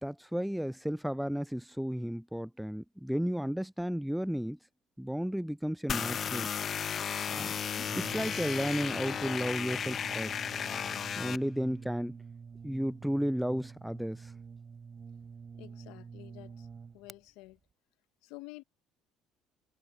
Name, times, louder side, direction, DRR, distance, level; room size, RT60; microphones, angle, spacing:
voice 1, 0.0-4.6 5.0-6.5 7.3-7.5 8.0-10.4 11.2-12.2 12.6-14.2, equal, ahead, 0.3 m, -33 dB
sound 1, 5.9-11.4, left 8 dB, 45° left, 1.3 m, -34 dB
Brass instrument, 7.8-17.2, right 5 dB, 35° right, 4.8 m, -48 dB
voice 2, 15.6-16.7 16.9-17.6 18.2-18.6, left 20 dB, 80° left, 1.2 m, -50 dB
supercardioid pair, 75°, 0 cm